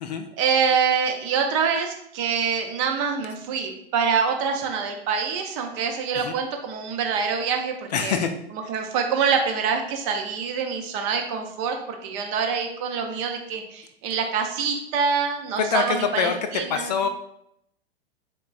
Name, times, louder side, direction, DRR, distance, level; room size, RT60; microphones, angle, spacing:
voice 1, 0.4-7.7 8.0-8.2 8.7-16.9, right 6 dB, 30° right, 4 dB, 0.5 m, -25 dB
voice 2, 7.9-8.3 15.6-17.1, left 6 dB, 40° left, 7 dB, 0.4 m, -25 dB
3.9 x 3.6 x 2.3 m, 0.73 s
figure-of-eight pair, 100°, 32 cm